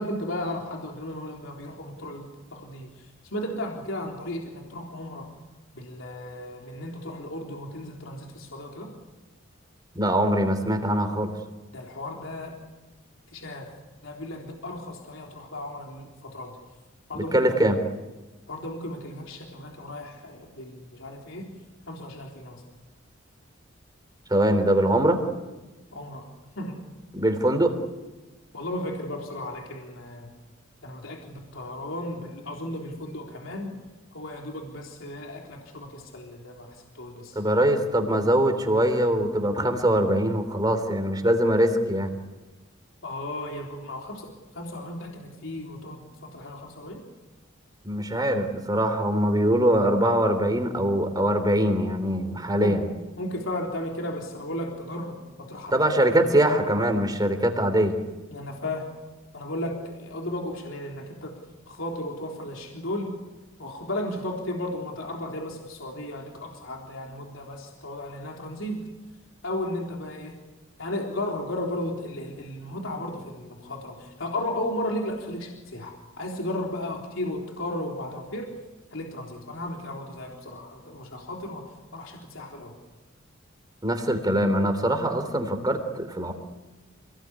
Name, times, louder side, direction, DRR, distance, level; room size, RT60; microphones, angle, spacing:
voice 1, 0.0-5.3 5.7-8.9 11.7-12.6 13.3-13.7 14.0-16.6 17.1-17.5 18.5-21.5 21.9-22.6 25.9-26.3 26.6-26.8 28.5-30.3 30.8-33.8 34.1-37.4 43.0-47.0 52.6-52.8 53.2-56.1 58.3-58.9 59.3-61.4 61.7-63.1 63.6-68.8 69.4-70.4 70.8-78.5 78.9-82.7, left 1 dB, 70° left, 0 dB, 3.8 m, -35 dB
voice 2, 9.9-11.3 17.3-17.8 24.3-25.2 27.1-27.7 37.3-42.1 47.8-52.8 55.7-58.1 83.8-86.3, right 1 dB, 20° right, 7 dB, 3.4 m, -22 dB
28.5 x 19.0 x 9.7 m, 1.1 s
head